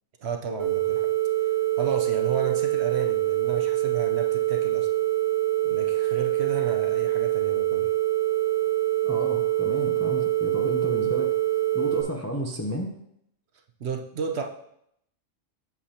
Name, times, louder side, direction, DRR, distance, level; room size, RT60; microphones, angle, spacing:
voice 1, 0.2-1.1 1.8-4.9 5.6-7.9 13.8-14.4, right 6 dB, 60° right, 2 dB, 0.9 m, -32 dB
sound 1, 0.6-12.0, right 15 dB, 80° right, 1.3 m, -25 dB
voice 2, 9.0-12.9, equal, 20° left, 1 dB, 0.5 m, -32 dB
8.2 x 7.2 x 2.9 m, 0.74 s
omnidirectional pair, 1.3 m